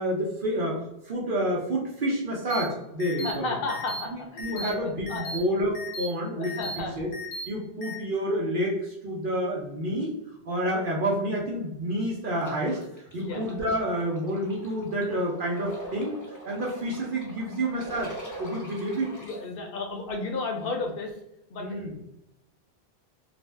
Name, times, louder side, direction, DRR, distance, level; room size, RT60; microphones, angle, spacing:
voice 1, 0.0-3.5 4.4-7.1 7.5-10.1 10.5-12.8 13.1-16.2 16.5-18.1 18.4-19.1 21.6-21.9, right 1 dB, 60° right, -3 dB, 0.7 m, -29 dB
sound 1, 2.5-2.6 3.0-3.3 3.7-4.0 4.4-4.7 5.1-5.4 5.7-6.1 6.4-6.8 7.1-7.4 7.8-7.9, equal, 85° left, 1.0 m, -36 dB
voice 2, 3.2-5.4 6.4-7.1 13.2-13.4 19.0-21.2 21.5-21.7, left 3 dB, 65° left, 3 dB, 0.8 m, -33 dB
sound 2, 12.4-19.4, right 1 dB, 25° left, 0.5 m, -43 dB
2.5 x 2.0 x 3.2 m, 0.87 s
omnidirectional pair, 1.1 m